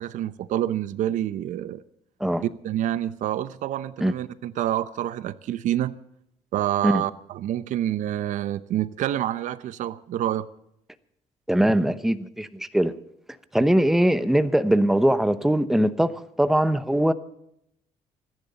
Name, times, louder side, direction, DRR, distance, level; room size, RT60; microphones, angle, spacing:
voice 1, 0.0-1.8 2.6-5.9 6.5-10.5, right 12 dB, 75° right, 0.8 m, -27 dB
voice 2, 11.5-12.9 13.5-16.1 16.4-17.1, right 1 dB, ahead, 0.9 m, -21 dB
27.0 x 10.5 x 4.1 m
cardioid pair, 115°, 13 cm